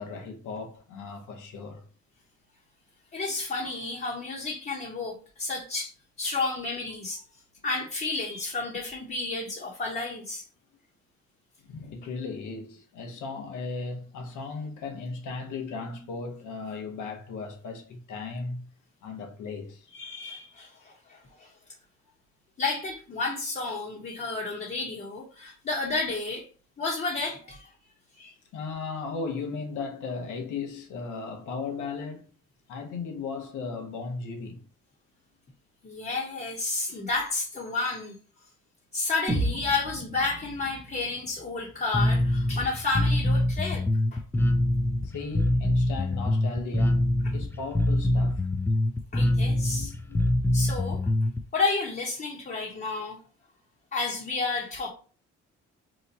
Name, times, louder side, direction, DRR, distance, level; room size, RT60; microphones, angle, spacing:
voice 1, 0.0-1.8 11.6-18.7 19.0-19.9 28.5-32.3 32.7-34.6 45.0-47.0 47.3-48.5 49.6-50.2, left 4 dB, 85° left, 1.0 m, -36 dB
voice 2, 3.1-5.9 6.2-7.2 7.6-10.4 19.9-21.5 22.6-26.4 26.8-27.7 28.2-28.3 35.8-38.2 38.9-43.8 44.1-44.2 49.1-49.9 50.5-51.0 51.5-53.2 53.9-54.9, left 3 dB, 30° left, 1.0 m, -31 dB
sound 1, 39.3-43.2, right 2 dB, 15° right, 0.8 m, -35 dB
Bass guitar, 41.9-51.4, left 1 dB, 10° left, 0.3 m, -24 dB
3.0 x 2.2 x 3.9 m
cardioid pair, 90°, 30 cm